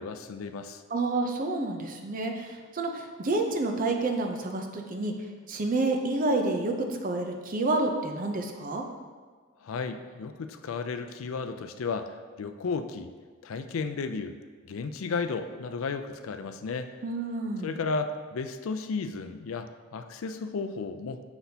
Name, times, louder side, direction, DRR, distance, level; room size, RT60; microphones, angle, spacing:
voice 1, 0.0-0.8 9.6-13.1 13.4-14.4 14.7-16.9 17.6-21.2, left 4 dB, 75° left, 8 dB, 0.4 m, -34 dB
voice 2, 0.9-5.1 5.5-8.8 17.0-17.7, right 2 dB, 40° right, 4 dB, 0.6 m, -29 dB
6.7 x 5.9 x 2.8 m, 1.5 s
head